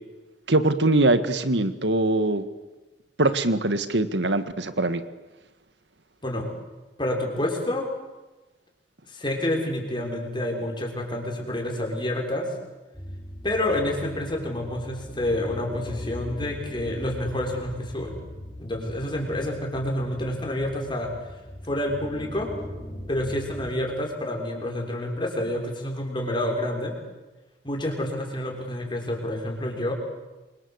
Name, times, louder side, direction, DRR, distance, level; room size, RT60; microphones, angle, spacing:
voice 1, 0.5-2.5 3.2-5.0, right 2 dB, 80° right, 11 dB, 1.9 m, -22 dB
voice 2, 7.0-7.9 9.1-12.5 13.4-18.1 18.6-21.1 21.7-22.5 23.1-27.0 27.6-29.9, left 1 dB, 25° left, 1 dB, 6.3 m, -28 dB
sound 1, 12.9-23.7, left 1 dB, ahead, 6.9 m, -39 dB
28.0 x 25.0 x 8.2 m, 1.1 s
head